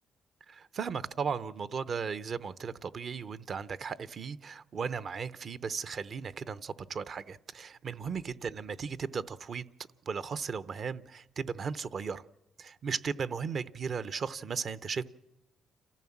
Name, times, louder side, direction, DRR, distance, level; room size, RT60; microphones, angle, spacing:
voice 1, 0.5-9.6 10.1-12.2 12.6-15.1, right 6 dB, 50° right, 16 dB, 0.7 m, -36 dB
28.0 x 15.0 x 7.2 m, 0.95 s
cardioid pair, 90°, 0 cm